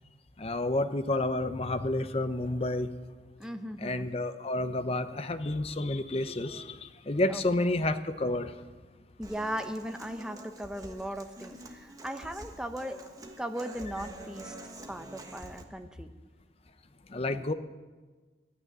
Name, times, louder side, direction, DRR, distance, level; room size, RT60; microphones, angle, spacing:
voice 1, 0.4-2.9 3.8-8.5 17.1-17.5, left 2 dB, 35° left, 10 dB, 0.7 m, -30 dB
voice 2, 3.4-4.1 7.3-7.7 9.2-13.0 13.4-14.5 14.9-16.1, equal, 5° right, 6 dB, 0.8 m, -38 dB
Human voice / Acoustic guitar, 9.2-15.6, right 1 dB, 20° right, 1.2 m, -47 dB
13.0 x 9.3 x 9.8 m, 1.4 s
head